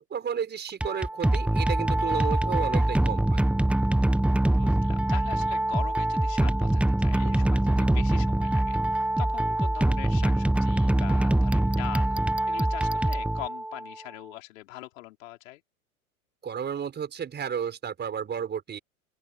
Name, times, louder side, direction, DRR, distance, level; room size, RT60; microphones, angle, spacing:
voice 1, 0.0-3.4 16.4-18.8, right 7 dB, 25° right, 5.7 m, -32 dB
sound 1, 0.7-13.9, right 1 dB, 5° right, 1.2 m, -24 dB
voice 2, 4.4-12.2 12.5-15.6, left 17 dB, 60° left, 5.1 m, -42 dB
open air
hypercardioid pair, 95°, 43 cm